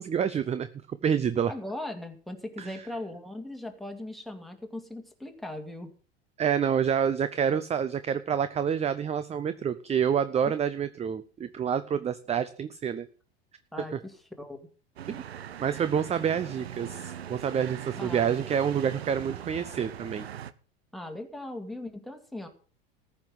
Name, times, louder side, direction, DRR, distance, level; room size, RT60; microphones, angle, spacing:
voice 1, 0.0-1.5 2.6-2.8 6.4-13.1 13.8-14.0 15.1-15.2 15.6-20.3, right 8 dB, 20° right, 13 dB, 0.7 m, -28 dB
voice 2, 1.5-5.9 10.4-10.5 13.7-14.6 18.0-18.5 20.9-22.5, left 1 dB, ahead, 4 dB, 2.4 m, -39 dB
sound 1, 15.0-20.5, right 10 dB, 85° right, 0.8 m, -40 dB
14.0 x 6.0 x 7.9 m, 0.40 s
hypercardioid pair, 90°, 31 cm